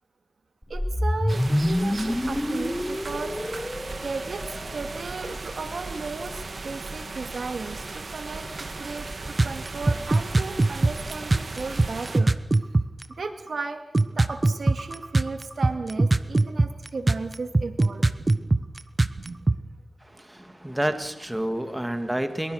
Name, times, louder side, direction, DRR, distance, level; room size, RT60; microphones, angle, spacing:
sound 1, 0.6-4.9, left 1 dB, 10° left, 0.8 m, -27 dB
voice 1, 0.7-3.4 4.0-12.3 13.2-13.8 14.2-18.7 19.2-19.4, right 4 dB, 75° right, 7 dB, 2.2 m, -35 dB
sound 2, 1.3-12.2, right 3 dB, 60° right, 2.5 m, -36 dB
sound 3, 9.4-13.0 13.5-13.6 13.9-19.6, right 2 dB, 35° right, 1.1 m, -20 dB
voice 2, 20.0-22.5, right 1 dB, 10° right, 8 dB, 2.4 m, -29 dB
23.5 x 23.0 x 6.5 m, 0.90 s
cardioid pair, 60°, 0 cm